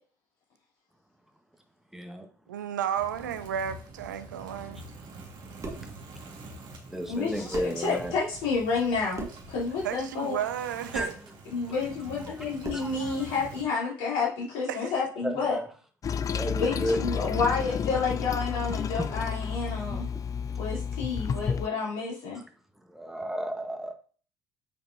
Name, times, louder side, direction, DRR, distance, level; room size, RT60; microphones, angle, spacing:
voice 1, 1.9-2.3 6.9-8.1 10.9-11.1 12.3-12.4 12.7-13.4 15.2-15.7 16.3-17.0 17.2-17.4 19.0-19.2 19.9-20.2 21.3-21.4 22.3-22.4 22.9-23.9, equal, 5° right, 1.3 m, -33 dB
voice 2, 2.5-4.8 9.8-11.1 14.7-14.9, right 9 dB, 80° right, 0.6 m, -32 dB
sound 1, 3.0-13.6, right 2 dB, 50° right, 1.8 m, -45 dB
sound 2, 5.6-5.9 7.1-7.2 7.5-7.8 9.1-9.5 10.9-11.2 12.6-13.0, right 2 dB, 30° right, 1.7 m, -39 dB
voice 3, 7.1-10.4 11.5-15.6 16.6-20.0 20.6-22.4, left 4 dB, 65° left, 3.3 m, -30 dB
Toilet flush, 16.0-21.7, left 7 dB, 35° left, 0.5 m, -31 dB
8.9 x 5.1 x 2.8 m
figure-of-eight pair, 50°, 10 cm